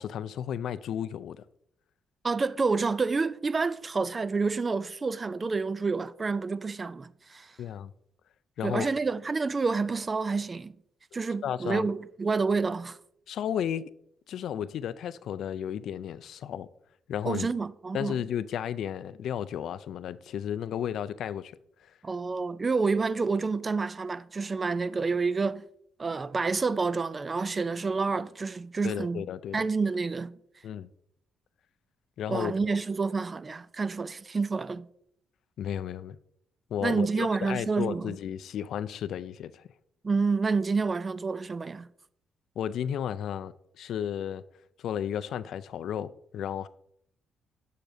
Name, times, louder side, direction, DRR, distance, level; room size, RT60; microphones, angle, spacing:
voice 1, 0.0-1.4 7.6-7.9 8.6-8.9 11.4-11.9 13.3-13.9 14.3-16.7 17.1-17.5 17.9-21.9 28.8-29.6 30.6-30.9 32.2-32.8 35.6-36.2 36.7-39.6 42.6-44.4 44.8-46.7, left 9 dB, 70° left, 0.3 m, -33 dB
voice 2, 2.2-7.5 8.6-10.7 11.1-13.0 17.2-18.1 22.0-25.6 26.0-29.2 29.5-30.4 32.3-34.9 36.8-38.1 40.0-41.9, right 4 dB, 30° right, 0.3 m, -28 dB
7.4 x 6.7 x 2.6 m
cardioid pair, 90°, 0 cm